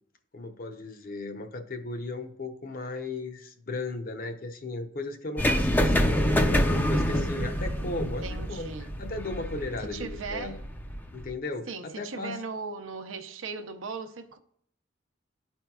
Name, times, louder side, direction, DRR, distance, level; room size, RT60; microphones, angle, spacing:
voice 1, 0.3-10.6 11.1-12.4, left 2 dB, 45° left, 0.7 m, -36 dB
sound 1, 5.4-11.3, equal, 10° left, 0.4 m, -27 dB
voice 2, 8.2-8.9 9.8-10.6 11.7-14.4, right 4 dB, 85° right, 0.6 m, -38 dB
12.0 x 4.4 x 2.3 m
head